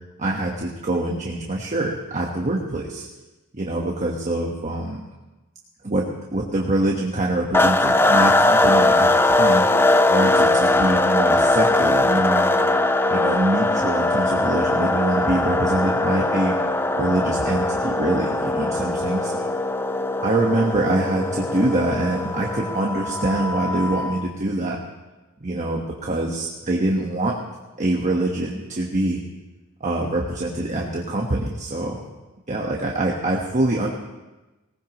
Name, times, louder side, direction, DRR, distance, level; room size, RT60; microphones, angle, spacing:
voice 1, 0.2-3.1 3.5-5.0 5.8-9.1 9.3-12.5 13.1-16.6 17.0-19.5 20.2-24.8 25.4-27.4 27.8-29.2 29.8-32.0 32.5-33.9, right 2 dB, 35° right, -1 dB, 1.3 m, -24 dB
sound 1, 7.5-24.2, left 2 dB, 10° left, 0.4 m, -20 dB
20.0 x 18.5 x 3.1 m, 1.1 s
head